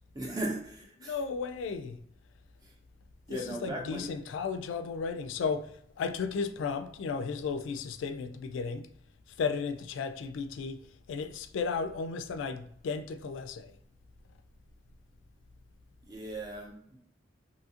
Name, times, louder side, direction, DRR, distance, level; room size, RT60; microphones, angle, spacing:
voice 1, 0.1-1.2 2.6-2.7 3.3-4.1 16.1-17.0, right 1 dB, 20° right, 0.5 m, -37 dB
voice 2, 1.0-2.0 3.3-5.7 6.0-8.9 9.4-10.8 11.1-13.7, left 5 dB, 90° left, 0.3 m, -34 dB
2.7 x 2.4 x 2.7 m
head